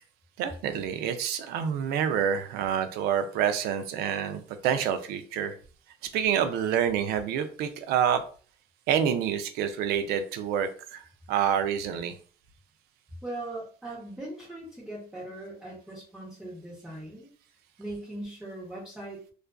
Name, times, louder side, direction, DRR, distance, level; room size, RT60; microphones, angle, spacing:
voice 1, 0.4-5.5 6.1-8.2 8.9-12.2, right 8 dB, 65° right, 9 dB, 0.4 m, -27 dB
voice 2, 13.2-17.3 17.8-19.2, right 1 dB, 5° right, -7 dB, 0.6 m, -40 dB
2.4 x 2.3 x 2.2 m, 0.41 s
cardioid pair, 150°, 18 cm